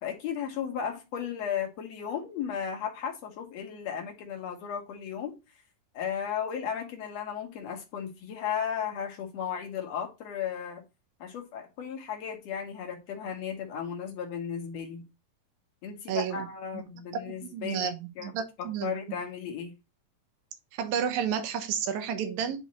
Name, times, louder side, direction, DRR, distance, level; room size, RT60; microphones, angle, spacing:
voice 1, 0.0-5.4 5.9-10.8 11.2-15.1 15.8-17.9 18.2-18.3 18.6-19.7, left 8 dB, 55° left, 2.1 m, -35 dB
voice 2, 16.1-16.5 16.7-16.8 17.1-18.9 20.7-22.6, right 8 dB, 65° right, 2.1 m, -31 dB
10.5 x 3.6 x 3.1 m
omnidirectional pair, 4.2 m